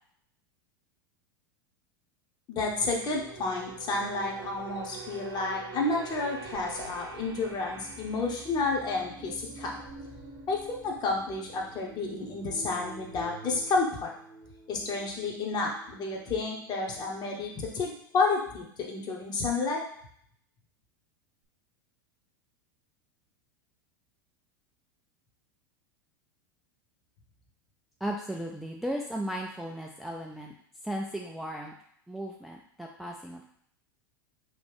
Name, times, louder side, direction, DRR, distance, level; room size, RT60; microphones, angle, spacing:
voice 1, 2.5-9.8 10.5-14.1 14.7-19.8, left 3 dB, 35° left, -1 dB, 0.9 m, -31 dB
sound 1, 2.6-17.2 17.5-17.8, right 4 dB, 45° right, 0.6 m, -46 dB
voice 2, 28.0-30.6 30.8-31.7 32.1-33.4, right 1 dB, ahead, 0 dB, 0.3 m, -36 dB
3.1 x 2.5 x 3.3 m, 0.66 s
hypercardioid pair, 90°, 12 cm